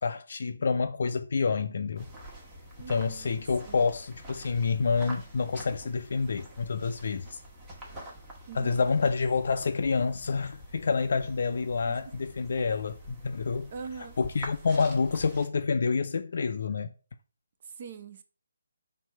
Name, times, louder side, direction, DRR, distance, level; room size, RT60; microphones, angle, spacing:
voice 1, 0.0-2.1 2.9-7.4 8.5-13.7 14.2-16.9, left 4 dB, 55° left, 0.3 m, -28 dB
sound 1, 1.9-15.5, right 1 dB, 20° right, 1.1 m, -47 dB
voice 2, 2.8-3.4 3.6-3.8 8.5-8.9 11.8-12.0 13.7-14.2 17.6-18.2, right 6 dB, 40° right, 0.6 m, -43 dB
4.3 x 2.7 x 4.4 m
figure-of-eight pair, 150°, 0 cm